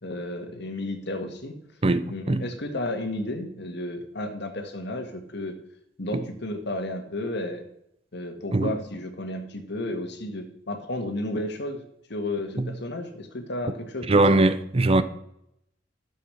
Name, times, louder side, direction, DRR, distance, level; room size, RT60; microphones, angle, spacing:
voice 1, 0.0-1.6 2.1-5.6 6.0-7.7 8.1-11.8 12.1-14.4, left 1 dB, 65° left, 1.8 m, -32 dB
voice 2, 1.8-2.4 6.1-6.2 8.5-8.7 12.6-12.7 14.1-15.0, right 2 dB, 30° right, 0.7 m, -21 dB
12.0 x 7.6 x 6.3 m
head